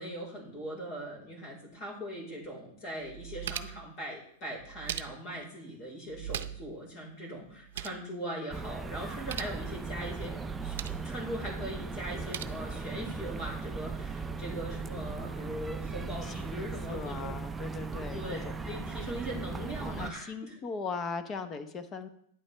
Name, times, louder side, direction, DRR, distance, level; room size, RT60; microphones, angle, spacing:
voice 1, 0.0-10.8 11.0-17.4 18.1-20.6, equal, 40° left, 0 dB, 4.3 m, -40 dB
sound 1, 2.4-2.5 3.0-3.9 4.6-5.4 6.1-6.8 7.0-7.1 7.5-8.0 9.1-9.6 10.4-11.1 12.0-12.4, right 10 dB, 75° right, 0.6 m, -40 dB
sound 2, 8.5-20.1, right 4 dB, 10° right, 0.5 m, -38 dB
voice 2, 16.2-18.7 19.8-22.1, left 4 dB, 25° left, 9 dB, 0.8 m, -39 dB
9.7 x 8.7 x 3.4 m, 0.68 s
hypercardioid pair, 140°, 0 cm